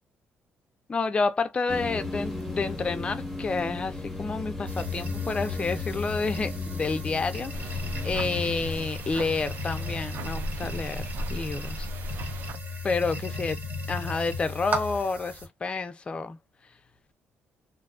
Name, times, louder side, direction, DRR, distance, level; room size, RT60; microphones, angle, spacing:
voice 1, 0.9-11.0 11.3-11.9 12.8-13.6 13.9-16.4, left 4 dB, 25° left, 0.4 m, -29 dB
sound 1, 1.7-8.9, left 2 dB, ahead, 0.9 m, -36 dB
sound 2, 4.7-15.5, left 2 dB, 35° right, 0.8 m, -35 dB
sound 3, 7.5-12.6, right 1 dB, 65° right, 0.4 m, -37 dB
2.5 x 2.2 x 2.3 m
cardioid pair, 125°, 4 cm